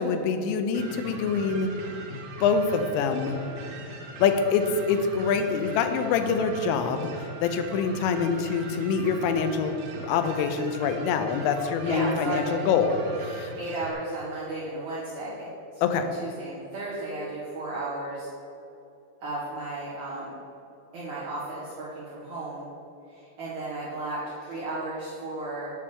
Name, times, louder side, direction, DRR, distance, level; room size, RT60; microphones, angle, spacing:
voice 1, 0.0-1.7 2.1-3.4 4.2-7.1 7.4-13.5 15.8-16.1, left 5 dB, 90° left, 7 dB, 3.2 m, -25 dB
sound 1, 0.7-13.9, right 2 dB, 80° right, 3.6 m, -40 dB
voice 2, 11.8-12.6 13.5-18.3 19.2-20.4 20.9-22.6 23.1-25.7, right 2 dB, 60° right, -10 dB, 2.0 m, -34 dB
10.0 x 3.5 x 6.8 m, 2.9 s
omnidirectional pair, 5.6 m